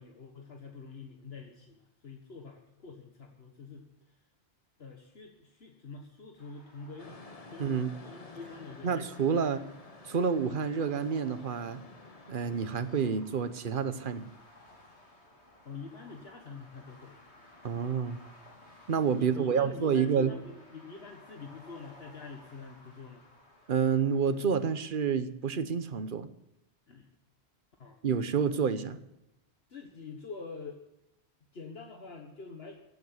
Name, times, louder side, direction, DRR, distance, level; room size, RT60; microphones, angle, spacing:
voice 1, 0.0-4.2 4.8-7.2 7.5-7.7 8.0-9.0 15.6-17.2 19.1-23.2 26.9-27.1 27.8-28.0 29.7-30.8 31.5-32.7, left 4 dB, 65° left, 2 dB, 1.7 m, -46 dB
sound 1, 6.4-24.8, left 1 dB, 80° left, 3.4 m, -57 dB
sound 2, 7.0-13.0, left 3 dB, 35° left, 1.2 m, -51 dB
voice 2, 7.6-7.9 8.8-9.6 10.0-11.8 12.3-14.2 17.6-18.2 18.9-20.3 23.7-26.3 28.0-29.0, right 6 dB, 55° right, 12 dB, 1.1 m, -29 dB
16.0 x 8.0 x 8.0 m, 0.88 s
omnidirectional pair, 1.1 m